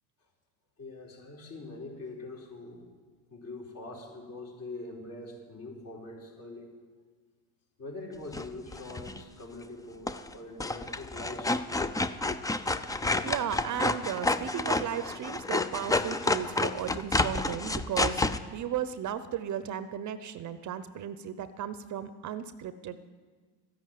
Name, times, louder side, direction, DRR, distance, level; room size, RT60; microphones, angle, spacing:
voice 1, 0.8-2.8 3.3-6.7 7.8-11.8, left 2 dB, 45° left, -1 dB, 4.7 m, -43 dB
sound 1, 8.3-9.2 10.1-10.3 10.6-18.4, left 2 dB, 10° left, 0.5 m, -29 dB
voice 2, 13.2-23.0, right 9 dB, 40° right, 13 dB, 0.8 m, -35 dB
13.5 x 10.0 x 9.2 m, 1.5 s
supercardioid pair, 95°, 44 cm